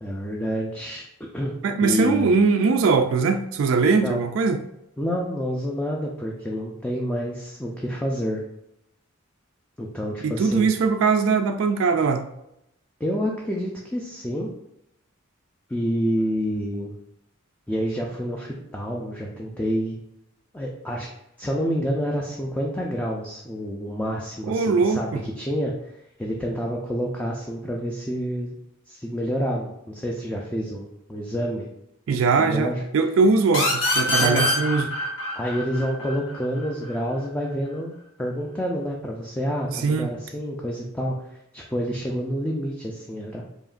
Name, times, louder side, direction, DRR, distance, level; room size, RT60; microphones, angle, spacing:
voice 1, 0.0-1.0 1.3-1.5 1.8-2.3 3.8-4.2 5.0-8.4 9.8-10.7 13.0-14.5 15.7-16.9 17.7-19.9 20.5-21.1 21.4-25.9 26.2-28.5 28.9-31.7 32.1-32.8 34.2-34.5 35.4-37.9 38.2-43.4, equal, 5° left, -2 dB, 0.4 m, -28 dB
voice 2, 1.6-4.6 10.2-12.2 24.5-25.2 32.1-34.9 39.7-40.1, right 4 dB, 70° right, 6 dB, 0.3 m, -21 dB
sound 1, 33.5-36.9, left 2 dB, 70° left, 1.0 m, -25 dB
4.9 x 2.9 x 2.5 m, 0.81 s
head